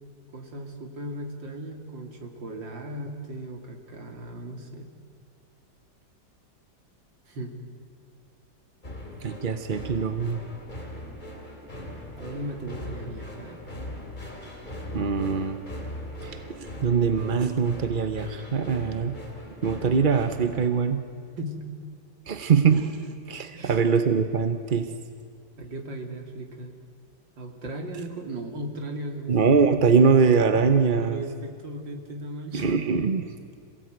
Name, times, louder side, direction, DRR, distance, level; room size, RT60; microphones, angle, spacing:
voice 1, 0.3-4.9 7.3-7.6 12.2-13.6 21.4-21.9 23.5-23.8 25.6-26.7 27.4-29.7 31.0-32.7, right 1 dB, 75° right, 4 dB, 3.2 m, -37 dB
sound 1, 8.8-20.7, left 1 dB, 25° left, 3.5 m, -40 dB
voice 2, 9.2-10.4 14.9-15.6 16.2-19.2 19.6-21.0 22.3-24.9 29.3-31.2 32.5-33.5, right 5 dB, 40° right, 8 dB, 0.7 m, -23 dB
27.0 x 17.5 x 9.3 m, 2.4 s
omnidirectional pair, 2.0 m